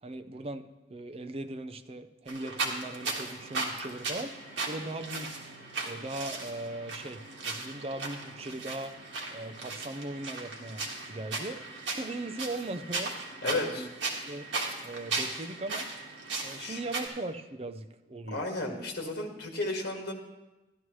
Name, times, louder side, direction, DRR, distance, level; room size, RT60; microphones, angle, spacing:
voice 1, 0.0-5.4 5.8-9.0 9.3-11.6 11.9-13.2 13.4-13.9 14.3-14.4 14.8-15.9 16.4-18.4, right 2 dB, 30° right, 9 dB, 0.5 m, -39 dB
sound 1, 2.3-17.1, right 3 dB, 75° right, 1.7 m, -37 dB
voice 2, 13.4-13.9 16.6-16.8 18.3-20.1, left 2 dB, 55° left, 1 dB, 1.8 m, -33 dB
14.0 x 11.0 x 3.1 m, 1.1 s
head